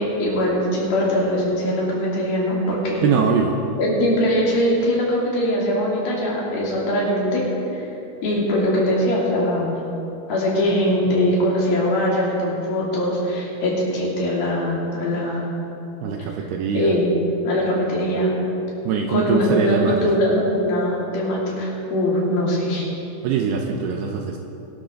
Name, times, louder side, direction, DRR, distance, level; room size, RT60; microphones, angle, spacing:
voice 1, 0.0-3.0 3.8-7.4 7.7-7.9 8.2-9.8 10.3-15.5 16.2-16.4 16.7-17.2 17.4-18.3 19.1-22.9, equal, 60° left, -5 dB, 4.5 m, -21 dB
voice 2, 3.0-3.6 16.0-17.0 18.9-20.1 23.2-24.4, right 6 dB, 80° right, 2 dB, 2.5 m, -22 dB
22.5 x 12.0 x 3.8 m, 2.9 s
omnidirectional pair, 5.2 m